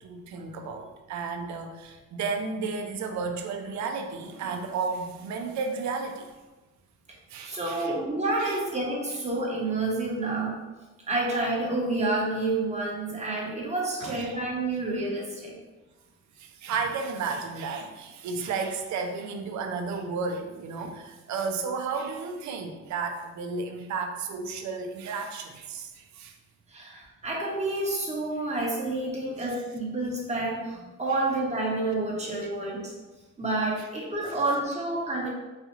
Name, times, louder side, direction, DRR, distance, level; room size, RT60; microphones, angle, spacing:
voice 1, 0.0-6.3 7.3-7.9 8.4-8.6 14.0-14.4 16.4-26.4 32.4-32.5 34.3-34.4, right 4 dB, 70° right, 4 dB, 0.5 m, -33 dB
voice 2, 7.4-10.5 11.1-15.6 26.7-32.9 33.4-35.3, right 2 dB, 20° right, -3 dB, 1.0 m, -29 dB
4.1 x 2.3 x 3.1 m, 1.2 s
cardioid pair, 90°, 30 cm